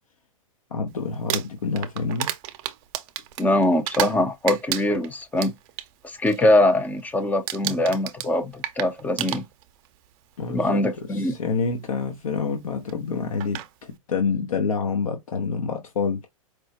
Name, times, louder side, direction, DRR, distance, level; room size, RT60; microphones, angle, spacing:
voice 1, 0.7-2.3 10.4-10.8 11.1-16.3, left 5 dB, 75° left, 0.8 m, -27 dB
Crumpling crinkling, 1.1-4.2 4.5-5.9 6.2-6.6 6.8-7.2 7.5-9.9 10.8-10.9 12.9-13.0 13.4-13.7, right 13 dB, 40° right, 0.5 m, -31 dB
voice 2, 3.4-5.5 6.0-9.4 10.5-11.3, left 1 dB, 10° left, 0.5 m, -22 dB
4.6 x 2.0 x 2.8 m
hypercardioid pair, 110°, 18 cm